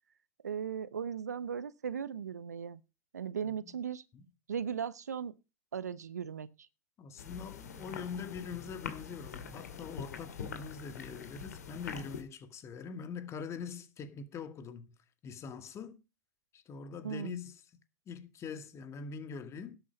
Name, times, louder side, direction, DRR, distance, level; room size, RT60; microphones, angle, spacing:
voice 1, 0.4-2.8 3.1-4.0 4.5-5.3 5.7-6.5 17.0-17.4, right 7 dB, 85° right, 0.7 m, -37 dB
voice 2, 3.4-3.7 4.1-4.3 7.0-15.0 15.2-16.0 16.5-17.6 18.1-19.8, left 6 dB, 35° left, 2.0 m, -43 dB
sound 1, 7.2-12.2, left 7 dB, 80° left, 2.3 m, -44 dB
12.0 x 8.5 x 5.2 m
hypercardioid pair, 95°, 9 cm